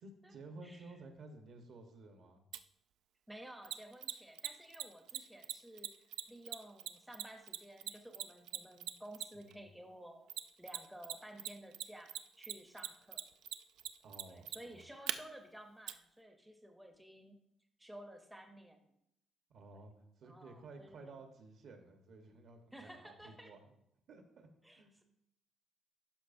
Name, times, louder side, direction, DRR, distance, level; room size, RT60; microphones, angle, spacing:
voice 1, 0.0-2.4 9.3-9.7 14.0-14.8 19.5-23.7 24.1-24.9, right 3 dB, 60° right, 5 dB, 1.1 m, -54 dB
voice 2, 0.6-0.9 3.3-5.9 6.3-10.3 10.6-13.2 14.3-17.4 17.8-18.9 19.7-19.8 20.2-21.1 22.7-23.5 24.6-25.0, right 1 dB, 5° right, 4 dB, 0.7 m, -54 dB
Mechanisms, 2.5-2.6 3.6-9.5 10.3-11.1 11.4-15.1 15.9-16.0, right 12 dB, 80° right, 0.3 m, -40 dB
12.0 x 4.9 x 2.6 m, 0.78 s
cardioid pair, 155°, 0 cm